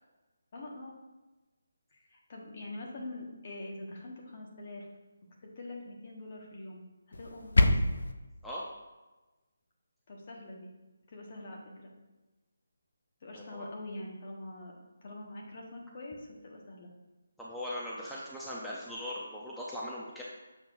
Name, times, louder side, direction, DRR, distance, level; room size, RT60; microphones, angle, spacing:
voice 1, 0.5-0.9 1.9-4.9 5.4-6.8 7.2-7.8 10.1-10.7 11.1-11.9 13.2-16.9, left 2 dB, 40° left, -1 dB, 1.4 m, -44 dB
sound 1, 7.1-8.1, left 1 dB, 70° left, 0.6 m, -25 dB
voice 2, 17.4-20.2, left 1 dB, ahead, -7 dB, 0.6 m, -39 dB
7.0 x 5.8 x 2.6 m, 1.1 s
figure-of-eight pair, 160°, 0 cm